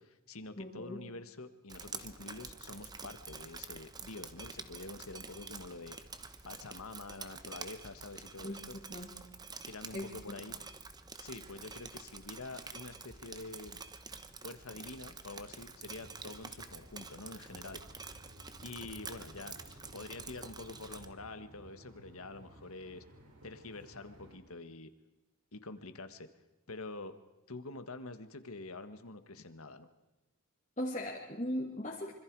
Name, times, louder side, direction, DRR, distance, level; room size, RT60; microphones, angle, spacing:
voice 1, 0.0-6.0 6.4-8.7 9.7-10.6 11.2-13.8 14.4-17.8 18.6-23.0 23.4-24.9 25.5-26.3 26.7-27.2 27.5-29.9, left 3 dB, 75° left, 10 dB, 1.6 m, -47 dB
voice 2, 0.6-1.1 8.4-9.2 9.9-10.4 30.8-32.1, left 1 dB, 35° left, -3 dB, 2.6 m, -39 dB
Drip, 1.7-21.1, right 4 dB, 20° right, 1.0 m, -48 dB
sound 1, 15.8-24.4, right 1 dB, 75° right, 5.3 m, -57 dB
26.0 x 25.5 x 4.8 m, 1.0 s
head